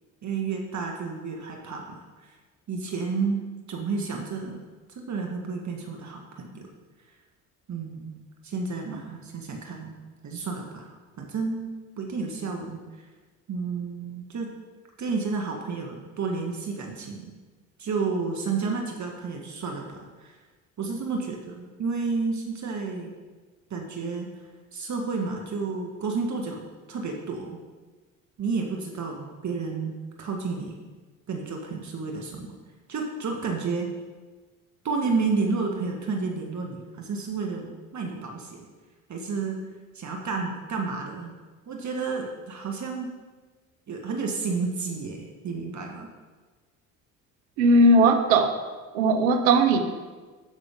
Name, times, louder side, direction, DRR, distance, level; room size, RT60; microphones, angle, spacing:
voice 1, 0.2-2.0 2.7-4.6 5.1-6.7 7.7-8.2 8.4-10.0 10.2-11.7 12.0-12.8 13.5-14.5 15.0-17.3 17.8-20.4 20.8-23.1 23.7-24.3 24.7-27.6 28.4-30.8 31.3-32.5 32.9-33.9 34.8-38.6 39.1-39.6 39.9-41.3 41.7-43.1 43.9-46.1, right 4 dB, 45° right, 1 dB, 1.6 m, -31 dB
voice 2, 47.6-48.5 48.9-49.8, right 2 dB, 85° right, 7 dB, 1.0 m, -18 dB
13.0 x 6.1 x 3.7 m, 1.3 s
hypercardioid pair, 65°, 41 cm